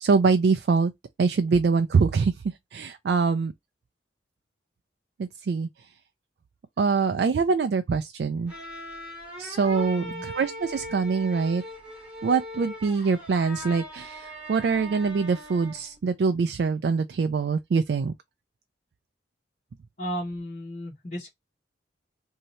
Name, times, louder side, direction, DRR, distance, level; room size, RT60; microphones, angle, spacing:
voice 1, 0.0-0.9 1.2-2.3 2.7-3.5 5.2-5.7 6.8-8.5 9.4-11.6 12.2-18.1, right 5 dB, 65° right, 0.3 m, -24 dB
sound 1, 8.5-16.0, equal, 5° right, 1.1 m, -40 dB
voice 2, 20.0-21.3, equal, 45° left, 1.2 m, -34 dB
2.7 x 2.7 x 3.1 m
head